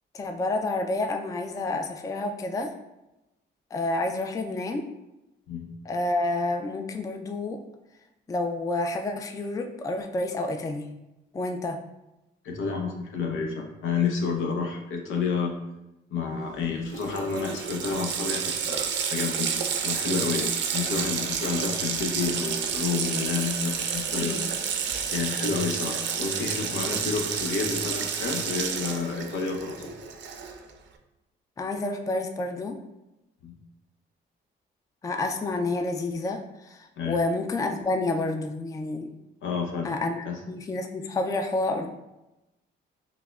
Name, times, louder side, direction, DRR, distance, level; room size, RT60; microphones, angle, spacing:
voice 1, 0.1-2.7 3.7-4.8 5.9-7.6 8.3-10.9 11.3-11.8 24.2-24.4 31.6-32.8 35.0-39.1 39.8-41.9, left 2 dB, 15° left, 5 dB, 0.3 m, -29 dB
voice 2, 12.4-15.6 16.1-19.6 19.8-24.4 25.1-29.9 33.4-33.5 37.0-37.2 39.4-39.9 40.3-40.4, left 5 dB, 80° left, 1 dB, 0.7 m, -30 dB
Water tap faucet, 16.6-16.7 16.9-30.7, right 7 dB, 65° right, 0.5 m, -30 dB
5.7 x 2.0 x 2.3 m, 0.95 s
cardioid pair, 90°, 20 cm